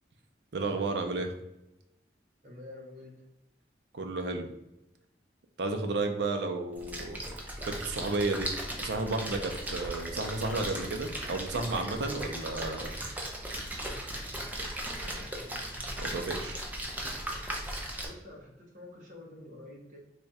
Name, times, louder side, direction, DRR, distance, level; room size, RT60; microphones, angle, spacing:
voice 1, 0.5-1.3 3.9-4.5 5.6-7.2 7.7-8.5 8.8-12.9 16.0-16.6, right 3 dB, 70° right, 5 dB, 0.5 m, -32 dB
voice 2, 2.4-3.3 15.0-15.7 18.0-20.0, left 2 dB, 45° right, -3 dB, 1.1 m, -48 dB
Splash splatter, 6.7-18.1, right 1 dB, 10° right, 0.5 m, -37 dB
3.4 x 2.3 x 4.1 m, 0.90 s
head